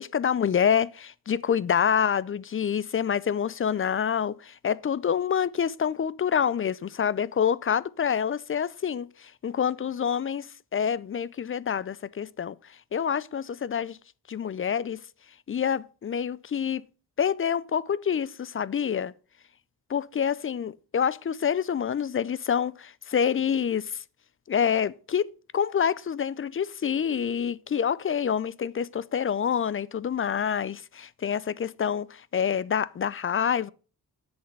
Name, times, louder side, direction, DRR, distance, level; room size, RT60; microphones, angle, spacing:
voice 1, 0.0-12.6 12.9-14.0 14.3-15.0 15.5-16.8 17.2-19.1 19.9-24.0 24.5-25.3 25.5-33.7, left 8 dB, 35° left, 0.4 m, -27 dB
8.0 x 6.7 x 5.2 m
cardioid pair, 85°, 37 cm